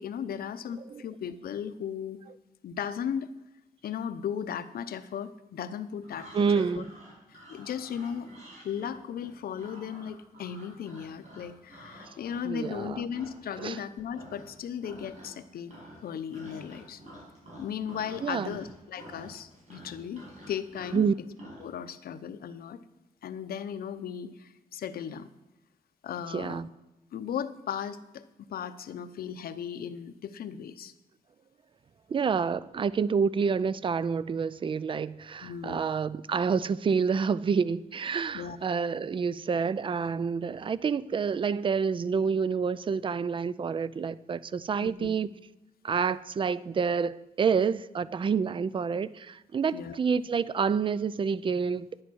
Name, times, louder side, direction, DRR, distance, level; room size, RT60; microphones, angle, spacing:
voice 1, 0.0-2.2 2.6-3.3 3.8-6.8 7.3-8.3 8.6-15.8 16.0-17.0 17.6-21.0 21.6-22.8 23.2-25.3 26.0-26.6 27.1-30.9 35.4-35.9 38.3-38.6 44.8-45.1 49.7-50.0, left 8 dB, 80° left, 0.8 m, -36 dB
sound 1, 6.0-13.8 14.1-14.6 14.8-15.4 15.7-21.7, equal, 50° right, 5.6 m, -49 dB
voice 2, 6.3-6.9 12.4-13.0 13.6-13.8 18.2-18.6 20.9-21.1 26.3-26.7 32.1-45.3 45.8-52.0, right 6 dB, 35° right, 0.4 m, -28 dB
11.0 x 9.5 x 6.3 m
wide cardioid pair, 130°, 15 cm